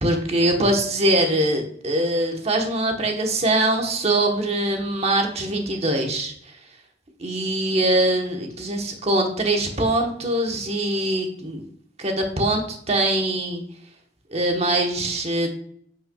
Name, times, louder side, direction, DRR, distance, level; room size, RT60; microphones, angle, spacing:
voice 1, 0.0-6.3 7.2-11.6 12.0-13.6 14.3-15.5, right 1 dB, 35° right, 3 dB, 1.1 m, -22 dB
8.2 x 5.5 x 2.3 m, 0.64 s
head